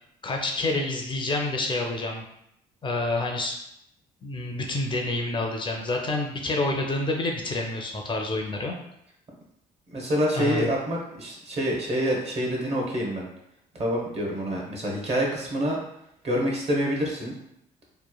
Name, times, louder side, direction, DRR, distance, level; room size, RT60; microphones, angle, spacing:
voice 1, 0.2-2.2 2.8-3.5 4.2-8.7 10.3-10.7, left 2 dB, 30° left, 1 dB, 0.4 m, -28 dB
voice 2, 9.9-13.3 13.7-15.8 16.2-17.3, equal, 40° right, -1 dB, 0.8 m, -27 dB
3.0 x 2.1 x 2.2 m, 0.78 s
cardioid pair, 90°, 16 cm